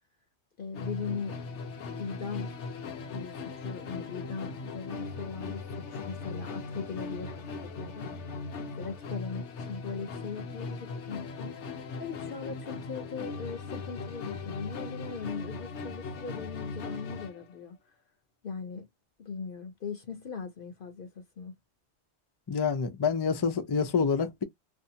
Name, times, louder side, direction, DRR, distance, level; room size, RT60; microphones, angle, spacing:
voice 1, 0.6-1.4 2.0-2.5 3.1-8.1 8.8-11.5 12.0-17.8 18.4-18.9 19.2-21.5, left 5 dB, 55° left, 0.8 m, -39 dB
Musical instrument, 0.7-17.4, left 4 dB, 90° left, 1.0 m, -39 dB
voice 2, 22.5-24.4, left 5 dB, 35° left, 0.4 m, -27 dB
2.6 x 2.1 x 2.7 m
omnidirectional pair, 1.1 m